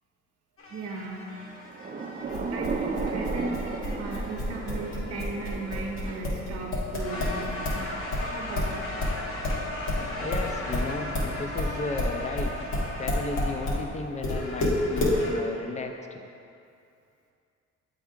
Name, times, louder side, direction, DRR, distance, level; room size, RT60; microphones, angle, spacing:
sound 1, 0.6-6.0 6.9-13.9 14.2-15.4, left 1 dB, 45° left, 1.0 m, -39 dB
voice 1, 0.7-1.2 2.5-7.9 8.2-8.8, right 3 dB, 55° right, 1 dB, 0.8 m, -36 dB
Thunder / Rain, 1.5-12.1, right 4 dB, 30° right, 0.5 m, -38 dB
sound 2, 2.3-7.8 8.1-13.8 14.2-15.2, left 1 dB, 80° left, 1.4 m, -29 dB
voice 2, 10.2-12.5 13.0-16.2, left 3 dB, 25° left, 4 dB, 0.5 m, -34 dB
8.2 x 3.5 x 3.7 m, 2.5 s
cardioid pair, 90°, 30 cm